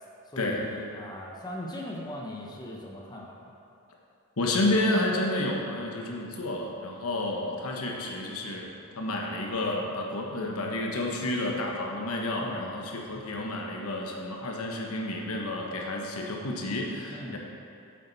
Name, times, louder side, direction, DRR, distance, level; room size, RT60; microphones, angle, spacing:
voice 1, 0.2-3.5 12.4-12.7 17.1-17.4, left 1 dB, 20° left, -2 dB, 0.9 m, -39 dB
voice 2, 4.4-8.7 9.0-17.4, left 1 dB, 75° left, 0 dB, 1.1 m, -30 dB
8.4 x 7.5 x 4.1 m, 2.7 s
head